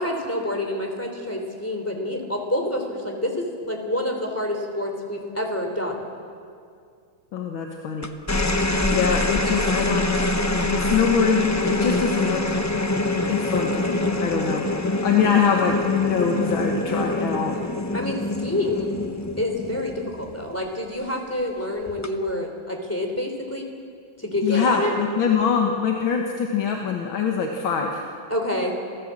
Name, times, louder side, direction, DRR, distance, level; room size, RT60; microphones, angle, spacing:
voice 1, 0.0-5.9 17.9-18.9 19.4-23.7 24.2-24.9 28.3-28.8, left 1 dB, 5° left, 2 dB, 3.2 m, -27 dB
voice 2, 7.3-8.1 8.9-10.1 10.6-12.6 13.3-14.7 15.0-17.6 24.4-28.0, left 6 dB, 80° left, 1 dB, 2.2 m, -23 dB
sound 1, 8.0-20.6 21.9-22.3, left 2 dB, 25° left, 0.3 m, -25 dB
27.5 x 16.0 x 7.6 m, 2.3 s
omnidirectional pair, 2.1 m